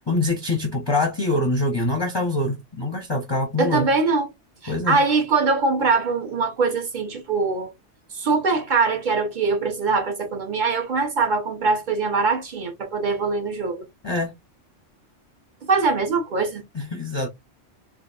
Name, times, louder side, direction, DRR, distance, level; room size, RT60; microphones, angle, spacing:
voice 1, 0.1-3.9 4.7-5.0 14.0-14.3 16.7-17.3, left 2 dB, 30° left, 0.6 m, -24 dB
voice 2, 3.6-4.3 4.6-7.7 8.1-13.8 15.6-16.6, right 4 dB, 45° right, 1.0 m, -22 dB
3.4 x 3.4 x 2.4 m
omnidirectional pair, 1.3 m